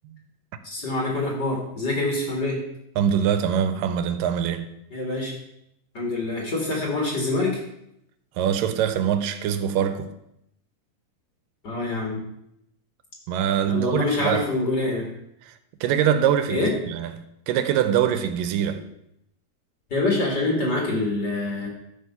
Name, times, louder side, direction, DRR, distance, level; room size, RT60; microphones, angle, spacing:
voice 1, 0.7-2.6 4.9-5.3 5.9-7.6 11.6-12.2 13.7-15.1 16.5-16.7 19.9-21.7, left 2 dB, 35° left, 2.1 m, -25 dB
voice 2, 3.0-4.7 8.4-10.1 13.3-14.4 15.4-17.1 17.5-18.8, right 9 dB, 85° right, 2.3 m, -23 dB
13.0 x 5.2 x 5.7 m
omnidirectional pair, 3.9 m